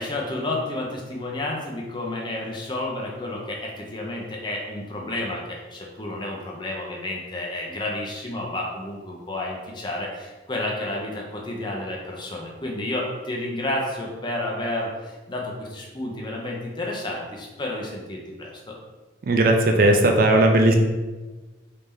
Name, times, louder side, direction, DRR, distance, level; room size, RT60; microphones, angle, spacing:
voice 1, 0.0-18.8, left 1 dB, 25° left, -2 dB, 0.5 m, -31 dB
voice 2, 19.3-20.7, right 1 dB, 45° right, 3 dB, 0.3 m, -17 dB
3.3 x 2.7 x 3.5 m, 1.2 s
head